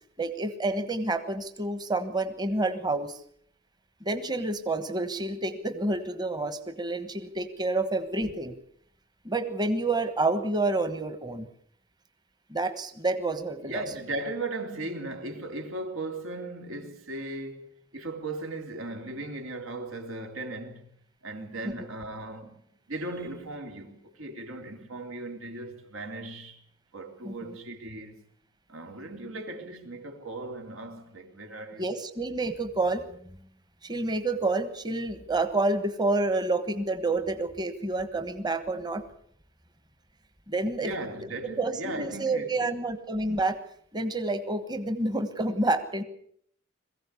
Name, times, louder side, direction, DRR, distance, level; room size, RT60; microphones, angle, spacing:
voice 1, 0.2-3.2 4.0-8.5 9.2-11.5 12.5-13.8 27.2-27.5 31.8-33.0 33.8-39.0 40.5-40.9 41.6-43.6 43.9-46.0, right 2 dB, 20° right, 1.3 m, -29 dB
voice 2, 13.6-20.9 21.2-22.6 22.9-26.6 26.9-28.2 28.7-31.9 40.8-42.8, right 2 dB, 80° right, 3.6 m, -37 dB
22.5 x 15.5 x 8.4 m
head